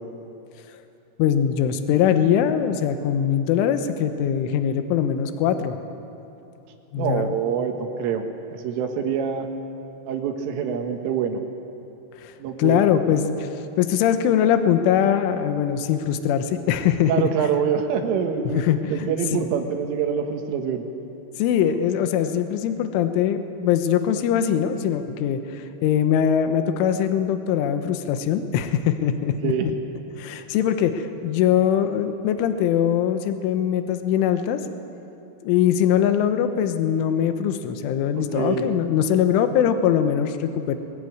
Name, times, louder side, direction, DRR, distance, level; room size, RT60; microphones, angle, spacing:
voice 1, 1.2-5.8 6.9-7.4 12.2-12.3 12.6-13.5 13.8-17.3 18.5-19.5 21.4-29.5 30.2-34.6 35.4-40.8, left 9 dB, 80° left, 8 dB, 3.5 m, -22 dB
voice 2, 7.0-9.5 10.1-11.4 12.4-12.8 17.1-18.6 18.9-20.9 21.7-21.8 29.4-29.7 38.2-38.7, right 7 dB, 80° right, 4 dB, 4.0 m, -25 dB
21.5 x 21.5 x 9.5 m, 2.9 s
omnidirectional pair, 5.8 m